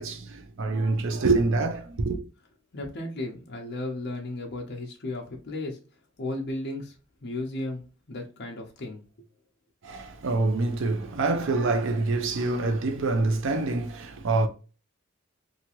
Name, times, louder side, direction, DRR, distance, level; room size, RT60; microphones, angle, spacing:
voice 1, 0.0-2.2 9.8-14.5, right 3 dB, 65° right, 0.5 m, -26 dB
voice 2, 2.7-5.8 6.2-6.9 7.2-7.8 8.1-9.0, left 2 dB, 55° left, 0.7 m, -34 dB
2.9 x 2.4 x 2.8 m
head